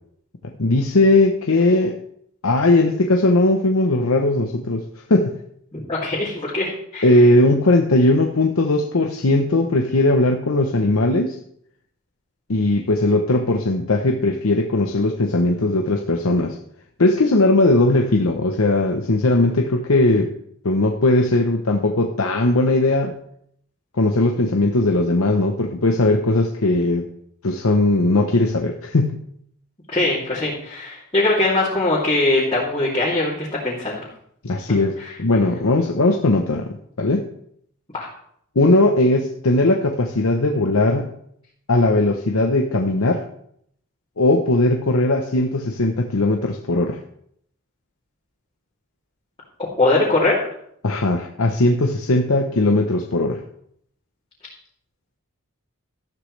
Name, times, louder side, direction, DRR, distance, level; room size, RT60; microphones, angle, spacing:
voice 1, 0.6-1.9 2.4-5.4 7.0-11.4 12.5-16.6 17.0-20.3 20.6-23.2 24.0-27.1 27.4-29.2 34.4-37.3 38.5-41.1 41.7-43.2 44.2-47.0 50.8-53.4, left 2 dB, 85° left, 3 dB, 0.9 m, -18 dB
voice 2, 5.7-7.1 29.9-34.1 35.0-35.1 37.9-38.1 49.8-50.4, left 2 dB, 25° left, -9 dB, 2.9 m, -21 dB
13.5 x 11.5 x 3.3 m, 0.70 s
head